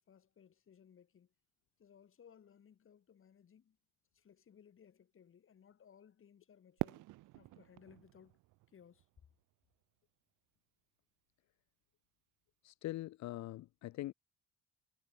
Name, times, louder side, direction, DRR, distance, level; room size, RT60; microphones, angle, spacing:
voice 1, 0.1-1.3 1.8-3.8 4.1-7.1 7.3-8.4 8.7-9.1, left 8 dB, 45° left, 1.4 m, -62 dB
Fireworks, 6.8-9.8, right 19 dB, 85° right, 0.5 m, -44 dB
voice 2, 12.6-14.1, left 16 dB, 65° left, 0.5 m, -43 dB
cardioid pair, 90°, 30 cm